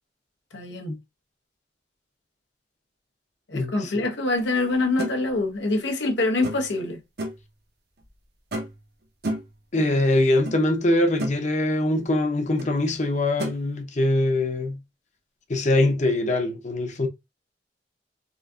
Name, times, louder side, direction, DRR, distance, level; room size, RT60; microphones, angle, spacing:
voice 1, 0.5-1.0 3.5-7.0, left 2 dB, 90° left, 0.9 m, -25 dB
voice 2, 3.5-4.1 9.7-14.8 15.5-17.1, left 1 dB, 45° left, 0.7 m, -23 dB
sound 1, 5.0-5.2 6.4-6.8 7.2-7.5 8.5-8.8 9.2-9.6 10.5-10.6 10.9-11.4 12.6-12.7 13.4-13.6, right 1 dB, 65° right, 0.9 m, -31 dB
3.8 x 2.5 x 2.3 m
head